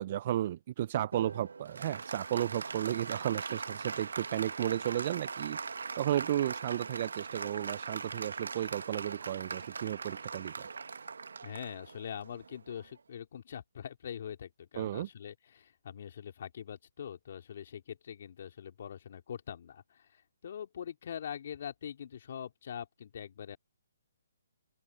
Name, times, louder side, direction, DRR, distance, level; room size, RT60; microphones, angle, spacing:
voice 1, 0.0-10.7 14.8-15.1, right 12 dB, 40° right, 0.5 m, -33 dB
Applause, 1.1-13.0, right 5 dB, 75° right, 1.5 m, -41 dB
voice 2, 11.4-23.6, left 8 dB, 55° left, 3.3 m, -43 dB
open air
figure-of-eight pair, 140°, 0 cm